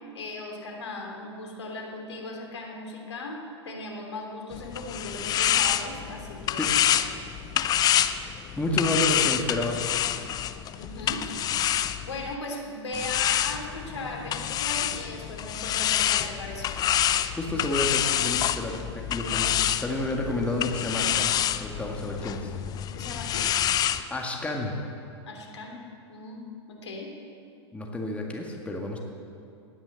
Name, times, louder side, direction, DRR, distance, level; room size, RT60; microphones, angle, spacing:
voice 1, 0.1-6.7 7.0-7.1 10.8-11.3 12.0-16.8 22.9-23.5 25.3-25.8 26.1-26.4 26.7-27.1, left 2 dB, 70° left, 1 dB, 3.3 m, -37 dB
sound 1, 4.5-12.3 12.9-24.0, left 11 dB, 25° left, 0.6 m, -27 dB
voice 2, 8.6-9.8 17.3-19.5 19.8-21.3 21.6-22.5 24.1-24.8 27.7-29.0, left 1 dB, 10° left, 0 dB, 1.9 m, -30 dB
18.0 x 10.5 x 7.8 m, 2.6 s
figure-of-eight pair, 100°, 15 cm